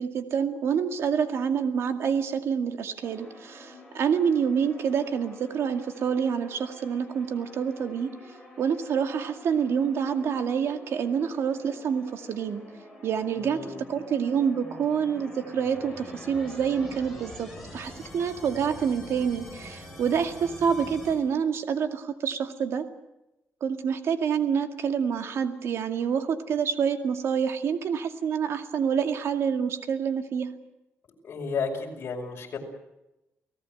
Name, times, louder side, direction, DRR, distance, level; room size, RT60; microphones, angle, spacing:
voice 1, 0.0-8.1 8.6-12.6 13.0-13.6 13.9-22.8 23.6-30.5, right 7 dB, 65° right, 6 dB, 2.2 m, -27 dB
sound 1, 3.0-21.1, left 1 dB, ahead, 7.9 m, -46 dB
voice 2, 13.4-13.9 31.2-32.6, left 5 dB, 50° left, 1 dB, 5.6 m, -33 dB
29.5 x 18.0 x 7.8 m, 0.92 s
wide cardioid pair, 160°, 5 cm